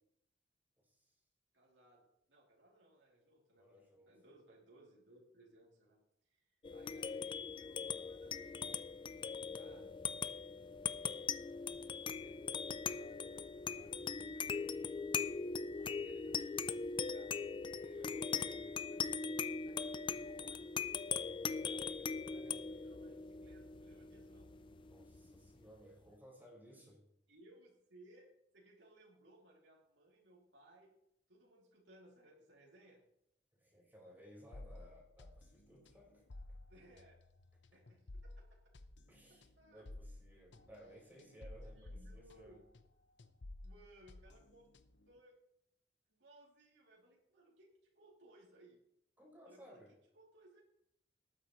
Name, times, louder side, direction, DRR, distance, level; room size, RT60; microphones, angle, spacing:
voice 1, 0.8-1.2 3.6-4.1 9.6-9.9 15.8-15.9 17.7-18.7 21.1-21.5 24.9-27.0 33.6-36.3 39.1-42.6 49.2-49.9, equal, 10° right, -3 dB, 4.6 m, -59 dB
voice 2, 1.5-8.8 9.5-9.9 11.0-11.2 12.1-14.6 15.7-17.3 18.5-20.7 21.7-24.5 27.3-28.3 28.5-30.9 31.3-33.0 36.7-37.2 37.7-38.6 39.6-39.8 41.6-42.6 43.6-44.7 45.1-45.4 46.1-48.8 49.4-50.6, right 1 dB, 80° right, -4 dB, 2.8 m, -64 dB
sound 1, 6.6-25.5, left 5 dB, 30° left, 0.4 m, -41 dB
sound 2, 34.5-42.9 43.2-45.1, left 1 dB, 75° left, 0.8 m, -54 dB
18.5 x 9.8 x 3.1 m, 0.78 s
head